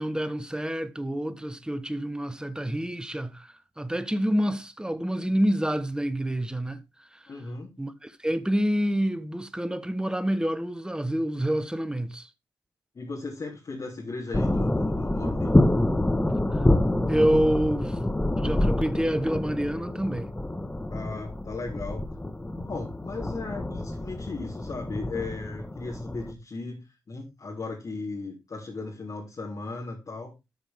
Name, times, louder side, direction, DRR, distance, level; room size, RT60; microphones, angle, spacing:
voice 1, 0.0-6.8 7.1-7.2 7.8-12.3 16.5-16.7 17.1-18.0 18.4-20.3, equal, 10° right, 1.3 m, -27 dB
voice 2, 7.3-7.7 13.0-15.5 20.9-22.0 22.6-30.3, left 3 dB, 50° left, 3.6 m, -36 dB
sound 1, 14.3-26.3, left 1 dB, 15° left, 1.5 m, -27 dB
13.0 x 5.8 x 3.7 m
supercardioid pair, 50°, 8 cm